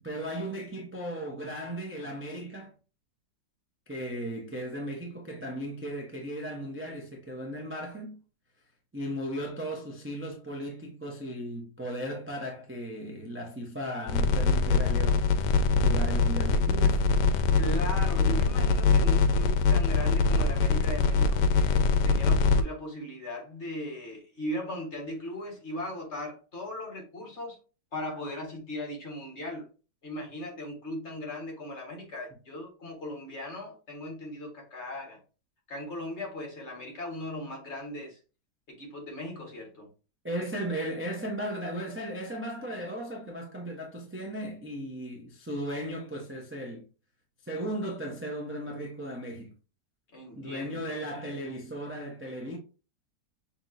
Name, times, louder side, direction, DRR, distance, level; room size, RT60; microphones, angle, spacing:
voice 1, 0.0-2.7 3.9-8.2 8.9-15.2 15.8-17.1 40.2-46.8 47.4-49.5 50.4-52.6, right 1 dB, 15° right, 0.5 m, -36 dB
sound 1, 14.1-22.6, left 4 dB, 80° left, 1.2 m, -23 dB
voice 2, 17.6-27.6 27.9-29.7 30.0-35.2 35.7-38.2 38.7-39.9 50.1-50.9, left 1 dB, 40° left, 1.7 m, -38 dB
6.1 x 2.9 x 2.6 m
omnidirectional pair, 1.8 m